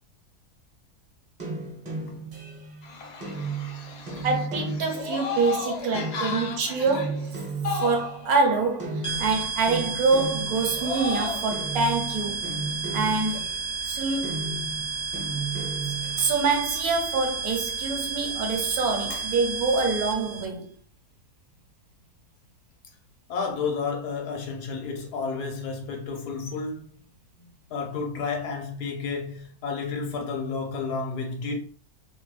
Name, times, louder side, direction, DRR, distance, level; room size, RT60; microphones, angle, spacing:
sound 1, 1.4-8.5 8.8-11.1 11.5-13.8 14.2-16.3, right 3 dB, 40° right, 0.6 m, -35 dB
voice 1, 2.8-4.3 4.8-5.0 5.9-7.1 16.2-16.3 19.1-19.2 23.3-26.9 27.7-31.6, left 4 dB, 80° left, 1.3 m, -32 dB
voice 2, 4.2-12.5 12.9-13.5 13.8-14.4 15.9-20.7, right 4 dB, 70° right, 1.0 m, -26 dB
sound 2, 4.9-6.0 7.6-8.4 10.7-11.5, left 5 dB, 60° left, 0.7 m, -32 dB
sound 3, 9.0-20.4, right 5 dB, 20° left, 0.5 m, -32 dB
3.0 x 2.2 x 3.1 m
omnidirectional pair, 1.7 m